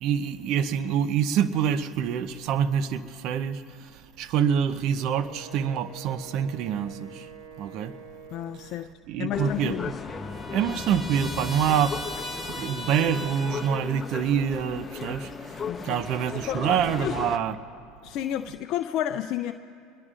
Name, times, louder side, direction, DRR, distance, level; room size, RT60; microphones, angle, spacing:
voice 1, 0.0-3.6 4.2-7.2 7.6-7.9 9.1-9.8 10.5-11.9 12.6-15.3 15.8-17.6, right 8 dB, 60° right, 0.7 m, -26 dB
Wind instrument woodwind instrument, 4.9-9.0, right 6 dB, 85° right, 1.6 m, -47 dB
voice 2, 8.3-8.9 9.2-9.9 15.7-16.0 16.5-16.6 17.0-17.2 18.0-19.5, left 12 dB, 55° left, 0.5 m, -31 dB
sound 1, 9.3-17.4, left 5 dB, 25° left, 1.0 m, -36 dB
Trumpet, 9.3-14.1, left 1 dB, 5° right, 1.9 m, -39 dB
26.0 x 21.5 x 2.5 m
hypercardioid pair, 90°, 0 cm